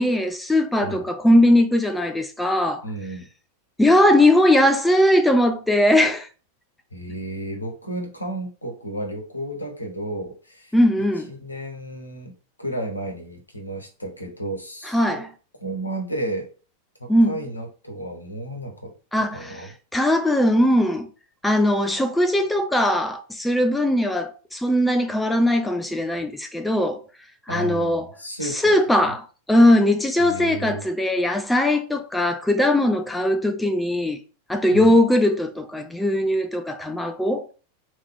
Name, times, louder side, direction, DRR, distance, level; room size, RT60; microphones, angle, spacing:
voice 1, 0.0-2.8 3.8-6.3 10.7-11.3 14.9-15.3 17.1-17.4 19.1-19.6 19.9-21.1 21.4-27.0 27.5-28.1 28.4-34.2 34.5-37.5, left 1 dB, 5° left, 0.4 m, -20 dB
voice 2, 2.8-3.3 6.9-10.8 11.3-12.3 12.6-15.2 15.6-16.5 17.0-18.9 19.3-19.7 27.5-29.1 30.2-30.8 34.7-35.0, right 1 dB, 80° left, 1.1 m, -33 dB
3.6 x 2.9 x 3.6 m
figure-of-eight pair, 90°, 0 cm